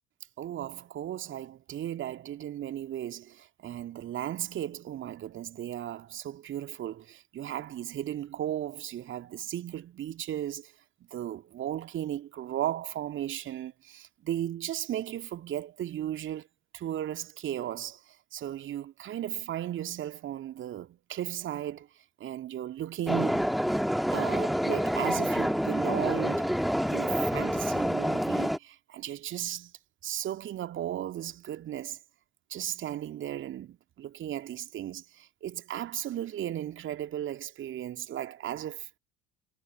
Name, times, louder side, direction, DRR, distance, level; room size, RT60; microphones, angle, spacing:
voice 1, 0.4-10.7 11.1-16.5 16.7-23.6 24.1-26.5 26.9-29.7 30.0-32.0 32.5-38.9, right 11 dB, 35° right, 2.0 m, -36 dB
sound 1, 23.1-28.6, equal, ahead, 3.0 m, -27 dB
figure-of-eight pair, 65°, 33 cm